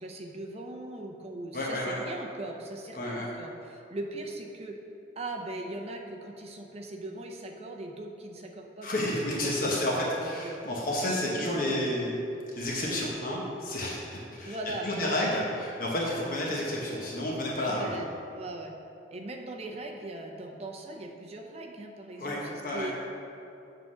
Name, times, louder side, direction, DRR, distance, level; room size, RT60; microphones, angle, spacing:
voice 1, 0.0-4.8 5.2-9.0 9.4-10.6 10.9-12.1 12.8-13.1 14.4-15.2 16.0-16.1 17.6-18.7 19.1-22.9, right 2 dB, 35° right, 2 dB, 0.6 m, -40 dB
voice 2, 1.5-2.0 2.9-3.3 8.8-12.1 12.5-14.6 14.8-18.0 22.2-22.9, left 1 dB, 45° left, -4 dB, 1.0 m, -31 dB
7.4 x 3.8 x 6.2 m, 2.7 s
head